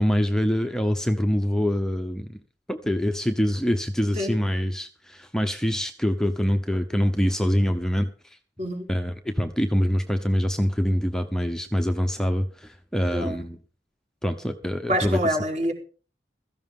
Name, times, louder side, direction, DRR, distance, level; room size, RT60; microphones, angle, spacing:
voice 1, 0.0-2.4 2.7-8.1 8.9-13.6 14.2-15.2, equal, 5° left, 6 dB, 0.8 m, -25 dB
voice 2, 14.9-15.7, equal, 40° right, 1 dB, 4.3 m, -26 dB
16.0 x 14.0 x 3.8 m, 0.39 s
head